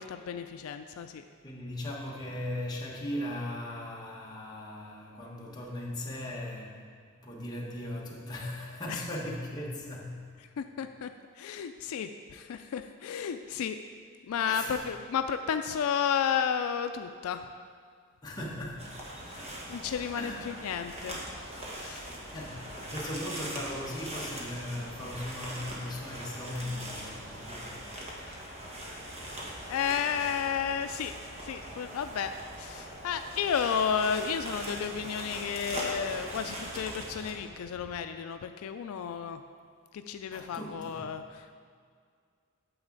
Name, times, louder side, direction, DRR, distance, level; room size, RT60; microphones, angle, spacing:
voice 1, 0.0-1.2 8.9-9.1 10.6-13.8 14.3-17.5 19.3-19.4 19.7-21.2 21.7-22.1 28.3-28.4 29.7-31.2 31.4-39.4 39.9-41.6, left 7 dB, 80° left, 8 dB, 0.3 m, -32 dB
voice 2, 1.3-6.8 7.2-10.3 14.5-14.9 18.2-19.0 19.2-19.9 20.2-20.5 22.3-28.4 40.3-41.1, left 1 dB, 20° left, -4 dB, 1.3 m, -38 dB
sound 1, 18.4-38.0, equal, 70° right, 1.5 m, -54 dB
sound 2, 18.8-37.3, right 1 dB, 30° right, 1.3 m, -41 dB
8.8 x 7.2 x 3.9 m, 2.1 s
head